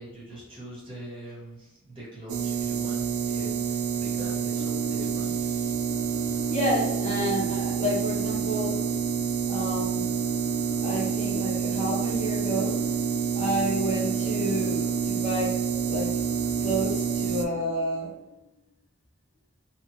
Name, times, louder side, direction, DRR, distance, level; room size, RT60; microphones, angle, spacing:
voice 1, 0.0-5.7, equal, 25° right, -5 dB, 0.9 m, -43 dB
sound 1, 2.3-17.5, right 8 dB, 85° right, 0.3 m, -28 dB
sound 2, 4.5-18.6, left 4 dB, 90° left, 0.4 m, -40 dB
voice 2, 6.5-8.8 9.5-10.1 10.8-12.8 13.3-16.2 16.6-18.1, equal, 35° left, -4 dB, 0.7 m, -30 dB
2.9 x 2.4 x 2.7 m, 0.97 s
head